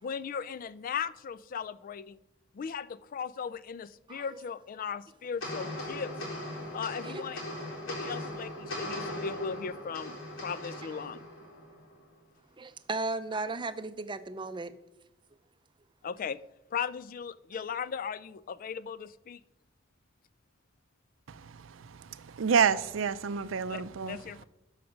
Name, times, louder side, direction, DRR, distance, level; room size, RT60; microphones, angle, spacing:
voice 1, 0.0-2.2 2.5-6.1 6.7-7.4 7.9-10.2 10.4-11.2 16.0-16.4 16.7-19.4 23.7-24.4, left 7 dB, 45° left, 0.3 m, -37 dB
sound 1, 5.4-12.0, left 1 dB, 90° left, 3.7 m, -39 dB
voice 2, 12.6-14.7, right 3 dB, 25° right, 0.5 m, -35 dB
voice 3, 21.3-24.2, right 6 dB, 85° right, 0.5 m, -29 dB
12.0 x 4.9 x 6.4 m
head